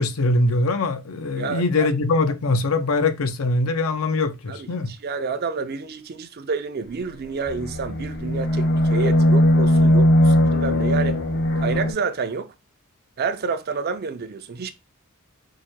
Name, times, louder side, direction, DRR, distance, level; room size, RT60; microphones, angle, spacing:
voice 1, 0.0-4.9, left 2 dB, 85° left, 0.6 m, -22 dB
voice 2, 1.4-1.9 4.5-11.2 11.6-12.5 13.2-14.7, right 5 dB, 50° right, 0.5 m, -29 dB
sound 1, 7.5-11.9, equal, 55° left, 1.0 m, -19 dB
4.7 x 2.2 x 4.4 m
head